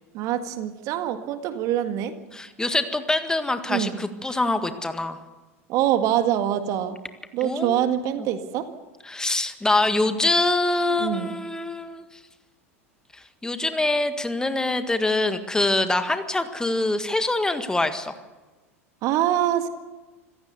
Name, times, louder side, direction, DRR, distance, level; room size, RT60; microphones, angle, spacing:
voice 1, 0.1-2.2 3.7-4.0 5.7-7.0 7.3-8.7 11.0-11.3 19.0-19.7, right 11 dB, 45° right, 9 dB, 1.9 m, -24 dB
voice 2, 2.3-5.2 7.4-7.9 8.2-8.3 9.1-12.0 13.1-18.1, left 2 dB, 10° left, 9 dB, 1.7 m, -24 dB
26.0 x 16.5 x 6.9 m, 1.2 s
figure-of-eight pair, 85°, 8 cm